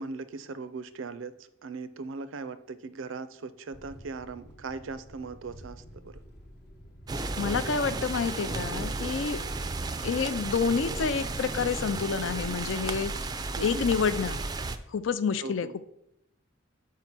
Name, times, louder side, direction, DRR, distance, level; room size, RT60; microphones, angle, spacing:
voice 1, 0.0-1.3 1.6-6.2 13.6-13.9 15.4-15.7, right 4 dB, 80° right, 14 dB, 0.5 m, -39 dB
sound 1, 3.7-13.0, equal, 55° left, 0.9 m, -47 dB
sound 2, 7.1-14.8, right 3 dB, 20° right, 0.3 m, -34 dB
voice 2, 7.4-9.4 10.0-13.1 13.6-14.4 14.9-15.8, left 5 dB, 75° left, 14 dB, 0.5 m, -28 dB
5.6 x 4.8 x 6.0 m, 0.79 s
head